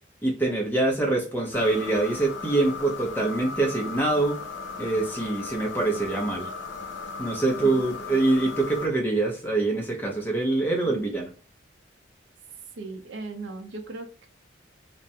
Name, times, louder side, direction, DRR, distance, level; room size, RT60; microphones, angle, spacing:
voice 1, 0.2-4.4 4.8-6.5 7.2-11.3, right 2 dB, 10° left, 0 dB, 0.6 m, -25 dB
sound 1, 1.5-8.9, left 4 dB, 85° left, 0.6 m, -37 dB
voice 2, 7.4-7.9 10.8-11.1 12.8-14.3, right 3 dB, 75° right, 5 dB, 0.5 m, -38 dB
2.4 x 2.1 x 2.7 m, 0.39 s
head